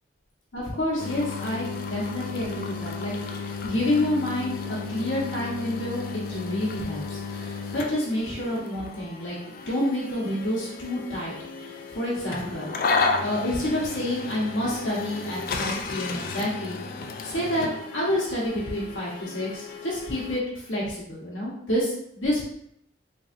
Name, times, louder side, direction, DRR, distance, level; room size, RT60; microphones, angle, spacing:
voice 1, 0.5-9.4 9.7-11.3 11.6-12.8 13.2-16.8 17.2-22.5, left 1 dB, 85° left, -7 dB, 1.1 m, -29 dB
sound 1, 1.0-20.4, left 4 dB, 45° left, 0.3 m, -33 dB
3.6 x 3.1 x 2.5 m, 0.72 s
head